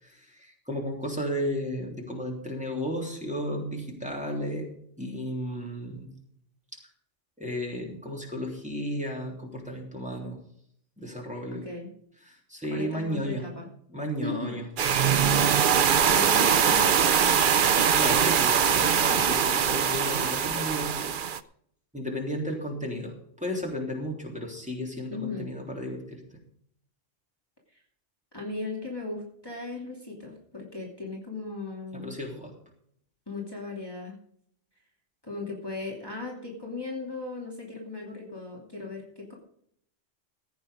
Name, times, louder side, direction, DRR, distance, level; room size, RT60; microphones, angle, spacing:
voice 1, 0.0-4.7 5.0-6.1 7.4-10.4 11.0-11.6 12.2-13.4 13.9-14.6 15.0-15.5 17.9-21.1 21.9-26.2 31.9-32.5, equal, 5° right, -1 dB, 3.4 m, -34 dB
voice 2, 12.7-13.7 14.2-14.6 16.0-17.4 25.1-25.5 27.7-27.8 28.3-32.1 33.3-34.1 35.2-39.3, left 3 dB, 20° left, -2 dB, 2.9 m, -37 dB
sound 1, 14.8-21.4, right 7 dB, 50° right, 0.7 m, -22 dB
15.5 x 8.8 x 5.1 m, 0.66 s
omnidirectional pair, 1.3 m